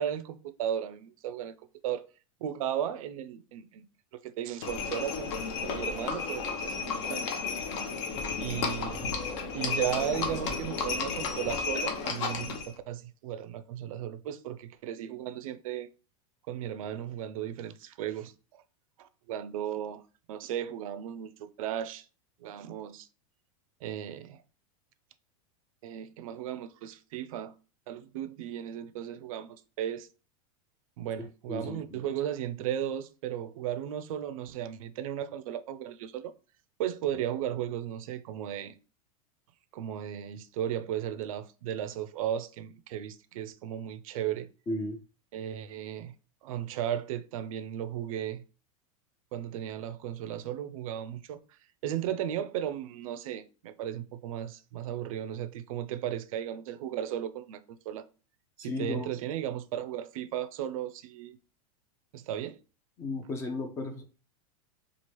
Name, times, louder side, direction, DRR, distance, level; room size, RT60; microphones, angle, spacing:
voice 1, 0.0-1.5 1.8-2.0 2.4-3.8 4.2-5.3 5.6-7.4 8.4-15.9 16.5-18.3 19.0-20.0 20.3-22.1 22.4-23.1 23.8-24.4 25.8-27.5 27.9-30.1 31.0-36.3 36.8-38.8 39.7-44.5 45.3-46.1 46.4-48.4 49.3-51.4 51.8-58.0 58.6-61.4 62.1-62.6, right 10 dB, 70° right, 0.4 m, -35 dB
Livestock farm animals working animals, 4.6-12.7, left 5 dB, 55° left, 0.7 m, -33 dB
voice 2, 31.5-32.0 44.7-45.0 58.6-59.1 63.0-64.0, left 2 dB, 15° left, 0.4 m, -34 dB
2.9 x 2.4 x 3.0 m
supercardioid pair, 160°, 18 cm